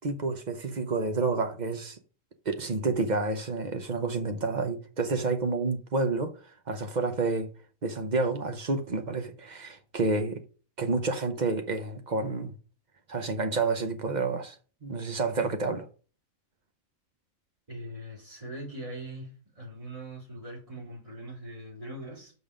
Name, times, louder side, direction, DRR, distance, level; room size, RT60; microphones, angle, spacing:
voice 1, 0.0-2.0 2.5-6.3 6.7-7.5 7.8-10.4 10.8-12.5 13.1-14.5 14.8-15.9, right 3 dB, 40° right, 0.8 m, -29 dB
voice 2, 17.7-19.3 19.6-22.3, right 1 dB, 25° right, 4.0 m, -41 dB
6.1 x 5.4 x 5.1 m
omnidirectional pair, 1.4 m